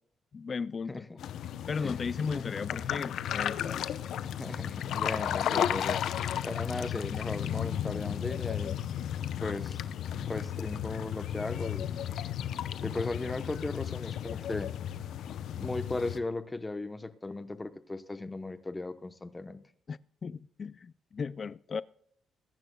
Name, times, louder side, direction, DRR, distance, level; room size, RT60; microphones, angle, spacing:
voice 1, 0.3-1.1 1.7-3.9 5.9-6.0 19.9-21.8, left 5 dB, 40° left, 0.3 m, -36 dB
voice 2, 0.9-1.2 1.8-2.0 2.3-2.7 4.4-6.0 6.4-8.8 9.4-9.8 10.2-11.9 12.8-14.7 15.6-19.6, left 2 dB, 20° left, 0.9 m, -37 dB
sound 1, 1.2-16.2, left 10 dB, 75° left, 0.7 m, -34 dB
21.0 x 10.5 x 2.3 m
cardioid pair, 90°, 0 cm